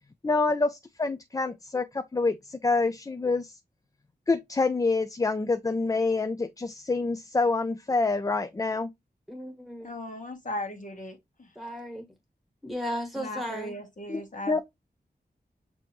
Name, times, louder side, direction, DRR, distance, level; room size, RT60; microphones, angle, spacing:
voice 1, 0.2-3.6 4.3-8.9 14.1-14.2 14.5-14.6, left 3 dB, 20° left, 0.3 m, -27 dB
voice 2, 9.3-9.9 11.5-12.0 12.6-13.7, equal, ahead, 1.6 m, -35 dB
voice 3, 9.8-11.5 13.1-14.6, left 1 dB, 50° left, 1.3 m, -37 dB
6.0 x 2.7 x 3.0 m
wide cardioid pair, 105°, 17 cm